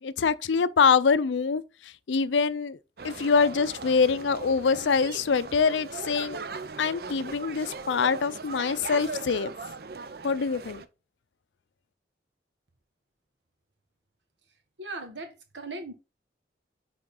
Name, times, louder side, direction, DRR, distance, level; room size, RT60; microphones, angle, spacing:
voice 1, 0.0-2.8 3.0-6.4 6.8-9.5 10.2-10.8, left 5 dB, 80° left, 0.5 m, -25 dB
sound 1, 3.0-10.9, right 4 dB, 55° right, 0.6 m, -39 dB
voice 2, 14.8-15.9, right 2 dB, 80° right, 1.5 m, -38 dB
8.7 x 3.8 x 3.7 m
head